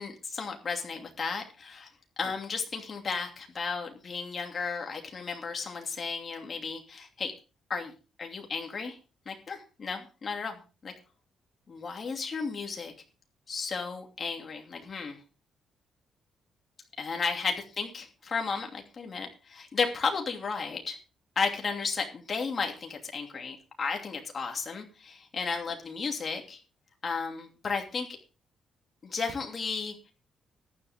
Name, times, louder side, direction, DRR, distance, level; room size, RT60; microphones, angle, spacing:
voice 1, 0.0-1.9 2.2-7.3 7.7-7.9 8.2-9.0 9.3-10.9 11.7-12.9 13.5-15.2 17.0-21.0 21.4-26.6 27.0-28.1 29.0-30.1, left 5 dB, 30° left, 2 dB, 2.7 m, -34 dB
14.5 x 10.5 x 3.6 m, 0.33 s
cardioid pair, 165°, 0 cm